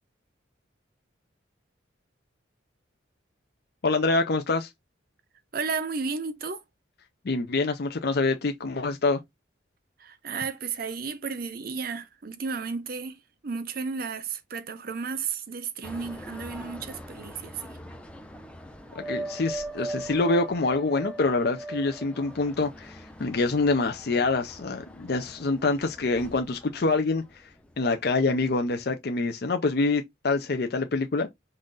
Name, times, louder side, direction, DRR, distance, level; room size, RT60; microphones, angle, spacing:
voice 1, 3.8-4.7 7.2-9.2 19.0-27.4 27.8-31.3, left 3 dB, 55° left, 0.5 m, -26 dB
voice 2, 5.5-6.6 10.0-17.8, right 5 dB, 50° right, 0.6 m, -33 dB
sound 1, 15.8-28.1 28.4-28.8, right 1 dB, 5° left, 0.5 m, -40 dB
5.5 x 2.5 x 3.8 m
head